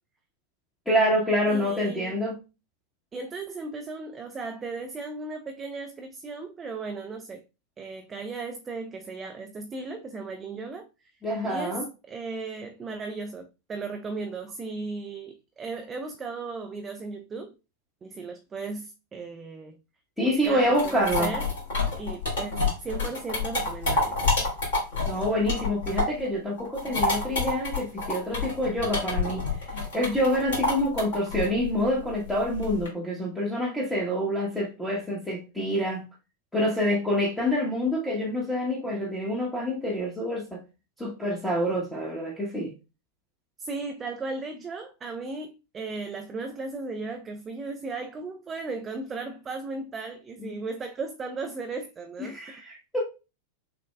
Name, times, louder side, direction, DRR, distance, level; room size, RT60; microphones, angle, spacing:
voice 1, 0.9-2.3 11.2-11.8 20.2-21.3 25.1-36.0 36.5-40.6 41.0-42.7 50.4-50.6 52.2-53.1, equal, 5° left, 0.9 m, -27 dB
voice 2, 1.5-2.2 3.1-7.4 7.8-10.9 11.4-17.5 18.0-19.8 20.2-21.5 22.0-24.2 43.6-52.4, right 3 dB, 20° right, 0.4 m, -36 dB
sound 1, 20.4-26.3 26.6-32.9, left 3 dB, 60° left, 2.3 m, -28 dB
6.1 x 2.2 x 2.2 m
figure-of-eight pair, 90°, 0 cm